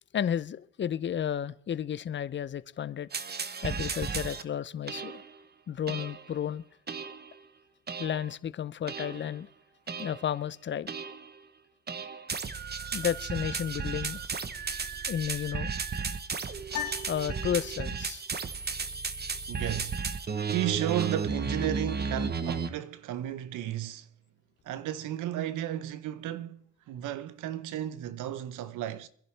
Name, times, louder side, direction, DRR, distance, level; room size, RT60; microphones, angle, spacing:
voice 1, 0.1-3.1 3.6-5.2 5.7-6.6 8.0-9.5 10.0-10.9 12.9-14.2 15.1-15.7 17.1-18.5, left 9 dB, 40° left, 0.6 m, -32 dB
sound 1, 3.1-4.4 4.9-5.4 5.9-6.3 6.9-7.3 7.9-8.3 8.9-9.4 9.9-10.3 10.9-11.3 11.9-22.7, right 5 dB, 35° right, 0.9 m, -34 dB
sound 2, 16.7-18.2, left 9 dB, 85° left, 2.0 m, -39 dB
voice 2, 19.5-20.0 20.5-24.1 24.7-29.1, right 12 dB, 85° right, 0.9 m, -33 dB
24.5 x 11.0 x 3.3 m
cardioid pair, 90°, 30 cm